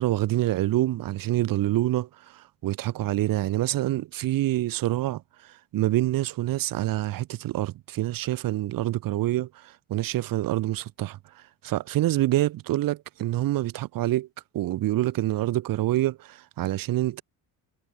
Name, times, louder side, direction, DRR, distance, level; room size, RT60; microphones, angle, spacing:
voice 1, 0.0-11.2 11.6-14.3 14.5-17.2, right 15 dB, 55° right, 3.5 m, -26 dB
cardioid pair, 160°, 41 cm